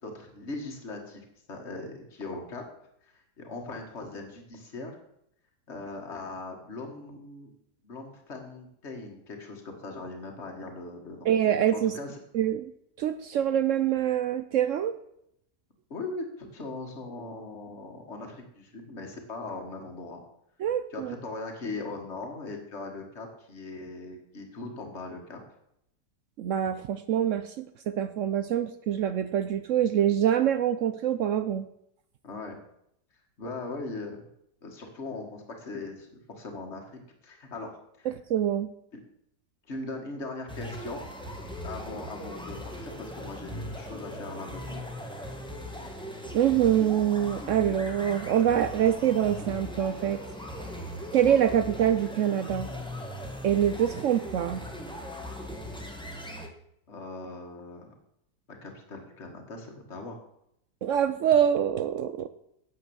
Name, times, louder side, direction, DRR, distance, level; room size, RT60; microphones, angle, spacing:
voice 1, 0.0-2.6 3.1-5.0 5.7-7.5 7.8-11.3 11.7-12.2 15.9-20.2 20.9-25.4 32.2-32.6 33.4-34.2 34.6-38.1 38.9-39.0 39.7-41.0 41.6-44.8 56.9-57.9 58.5-60.2, left 3 dB, 40° left, 2 dB, 2.1 m, -40 dB
voice 2, 11.3-11.9 12.3-12.7 13.0-14.9 20.6-21.1 26.4-31.6 38.1-38.7 46.3-50.2 51.1-52.7 53.4-54.6 60.8-62.3, right 10 dB, 70° right, 12 dB, 0.7 m, -25 dB
sound 1, 40.5-56.5, equal, 5° left, 1.4 m, -39 dB
9.5 x 7.8 x 7.1 m, 0.76 s
omnidirectional pair, 1.8 m